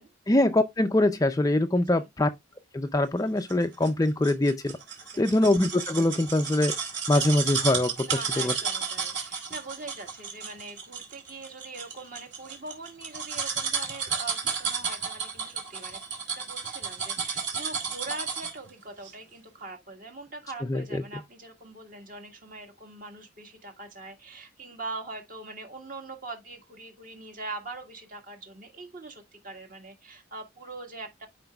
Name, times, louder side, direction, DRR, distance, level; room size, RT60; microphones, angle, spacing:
voice 1, 0.3-2.3 2.7-4.8 5.2-6.7 7.1-8.5 20.7-21.0, left 1 dB, 15° left, 0.5 m, -23 dB
sound 1, 3.5-18.7 19.0-19.1, right 6 dB, 60° right, 2.3 m, -32 dB
voice 2, 8.1-16.0 16.4-31.3, right 3 dB, 40° right, 1.7 m, -42 dB
11.5 x 5.1 x 2.3 m
head